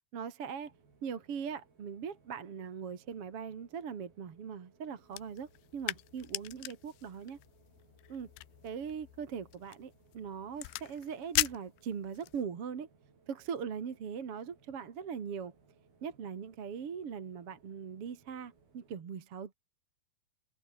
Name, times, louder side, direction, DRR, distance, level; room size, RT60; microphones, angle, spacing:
voice 1, 0.1-0.7 1.0-7.4 8.1-8.3 8.6-12.9 13.3-15.5 16.0-19.5, right 7 dB, 40° right, 2.5 m, -40 dB
sound 1, 0.6-19.0, right 4 dB, 60° right, 8.5 m, -66 dB
sound 2, 5.1-12.4, left 20 dB, 85° left, 2.9 m, -40 dB
omnidirectional pair, 4.9 m